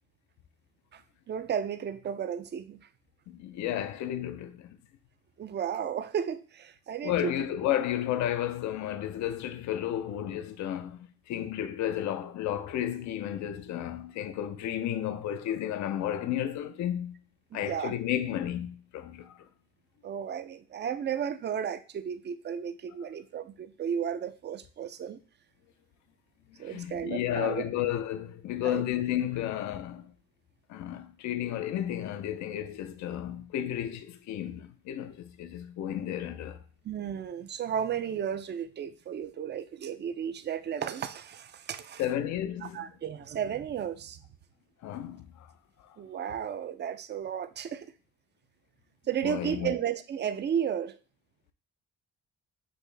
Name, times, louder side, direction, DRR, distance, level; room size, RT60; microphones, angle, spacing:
voice 1, 1.3-2.9 5.4-7.3 17.5-17.9 20.0-25.2 26.6-27.6 28.6-28.8 36.8-42.0 42.6-44.2 46.0-47.9 49.1-51.0, right 8 dB, 35° right, 0.4 m, -33 dB
voice 2, 3.3-4.8 7.0-17.2 17.5-19.4 26.6-30.1 30.7-36.6 42.0-42.9 44.8-45.5 45.8-46.0 49.2-49.8, left 11 dB, 70° left, 0.5 m, -32 dB
6.3 x 2.5 x 3.3 m
cardioid pair, 90°, 30 cm